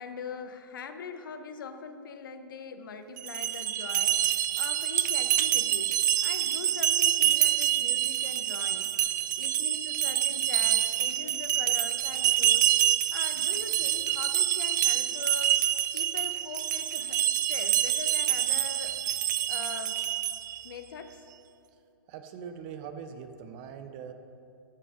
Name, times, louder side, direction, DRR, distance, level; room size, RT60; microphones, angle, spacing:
voice 1, 0.0-6.0 6.2-12.7 13.1-15.6 15.9-19.0 19.5-20.0 20.6-21.2, left 5 dB, 60° left, 8 dB, 0.9 m, -42 dB
sound 1, 3.2-20.6, right 12 dB, 50° right, 0.4 m, -27 dB
voice 2, 22.1-24.1, right 7 dB, 35° right, 8 dB, 0.8 m, -42 dB
13.5 x 5.6 x 5.0 m, 2.6 s
hypercardioid pair, 125°, 12 cm